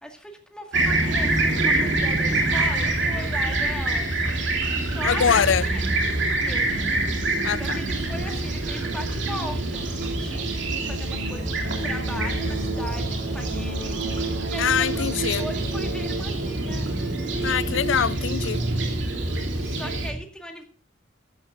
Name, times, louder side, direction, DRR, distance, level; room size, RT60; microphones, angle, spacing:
voice 1, 0.0-4.1 4.7-5.8 6.4-7.0 7.6-16.9 19.6-20.6, equal, 5° left, 2.1 m, -39 dB
Fixed-wing aircraft airplane, 0.7-20.1, right 2 dB, 65° right, 3.0 m, -25 dB
voice 2, 5.0-5.7 7.4-7.8 14.6-15.4 17.4-18.6, left 7 dB, 75° left, 0.5 m, -23 dB
14.0 x 12.0 x 3.8 m
head